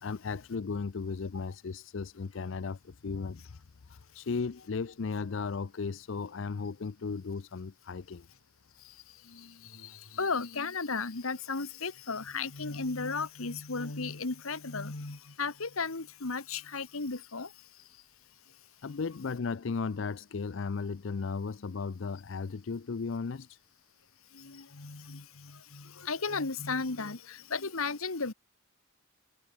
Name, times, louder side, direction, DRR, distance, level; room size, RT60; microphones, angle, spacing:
voice 1, 0.0-3.4 3.9-8.3 18.8-23.6, left 4 dB, 60° left, 0.5 m, -35 dB
voice 2, 9.3-17.5 24.3-28.3, left 4 dB, 85° left, 1.6 m, -35 dB
head